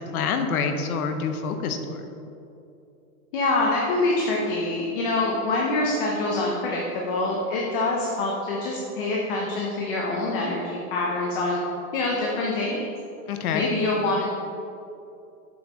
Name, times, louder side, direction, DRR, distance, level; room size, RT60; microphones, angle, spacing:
voice 1, 0.1-2.0 13.3-13.7, left 5 dB, 70° left, 7 dB, 0.8 m, -26 dB
voice 2, 3.3-11.6 11.9-12.8 13.5-14.3, left 2 dB, 35° left, -3 dB, 0.7 m, -25 dB
7.0 x 6.3 x 3.0 m, 2.8 s
supercardioid pair, 165°, 45 cm